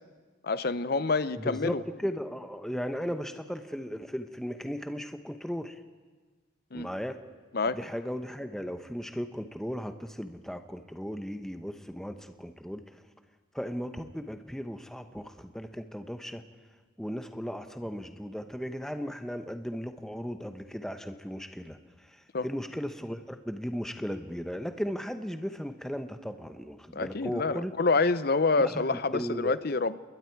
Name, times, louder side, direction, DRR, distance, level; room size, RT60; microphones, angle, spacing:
voice 1, 0.4-1.8 6.7-6.9 7.5-7.8 22.3-22.5 26.9-30.0, left 3 dB, 50° left, 15 dB, 0.6 m, -27 dB
voice 2, 1.4-5.8 6.7-7.2 7.7-12.8 13.5-16.4 17.0-21.8 22.1-27.7 28.6-29.8, equal, ahead, 7 dB, 0.9 m, -36 dB
28.0 x 21.5 x 4.7 m, 1.4 s
head